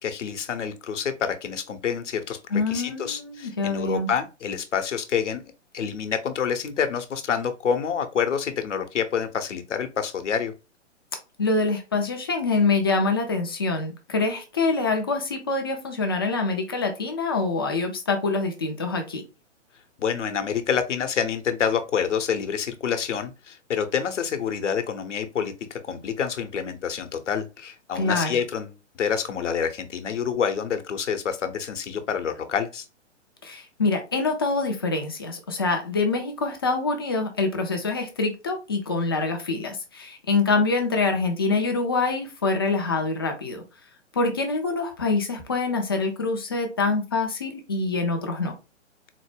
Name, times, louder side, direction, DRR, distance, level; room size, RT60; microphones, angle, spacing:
voice 1, 0.0-5.4 5.7-10.5 20.0-32.8, left 7 dB, 75° left, 0.8 m, -27 dB
voice 2, 2.5-4.1 11.4-19.2 28.0-28.3 33.4-43.6 44.1-48.5, left 3 dB, 20° left, 0.3 m, -25 dB
3.9 x 2.1 x 3.2 m
figure-of-eight pair, 130°, 37 cm